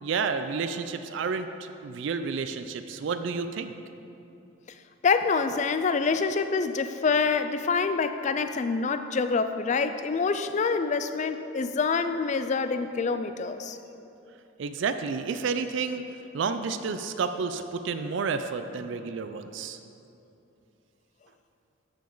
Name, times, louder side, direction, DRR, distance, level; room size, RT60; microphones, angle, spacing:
voice 1, 0.0-3.7 14.6-16.0 16.3-19.8, right 5 dB, 60° right, 9 dB, 0.3 m, -30 dB
voice 2, 5.0-13.8, left 4 dB, 35° left, 10 dB, 0.3 m, -26 dB
13.5 x 5.2 x 3.9 m, 2.9 s
head